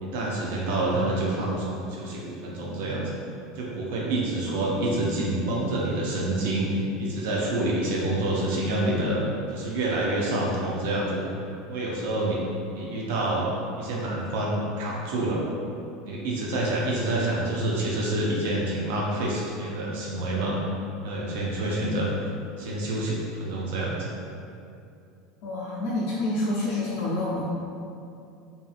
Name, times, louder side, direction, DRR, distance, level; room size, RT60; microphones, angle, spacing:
voice 1, 0.0-3.1 3.5-11.2 11.7-12.4 12.7-13.5 13.8-15.4 16.0-20.6 21.0-22.1 22.6-24.1, right 1 dB, 75° right, -4 dB, 0.4 m, -27 dB
voice 2, 25.4-27.4, left 2 dB, 80° left, -10 dB, 0.5 m, -28 dB
2.6 x 2.4 x 2.4 m, 2.6 s
supercardioid pair, 155°, 0 cm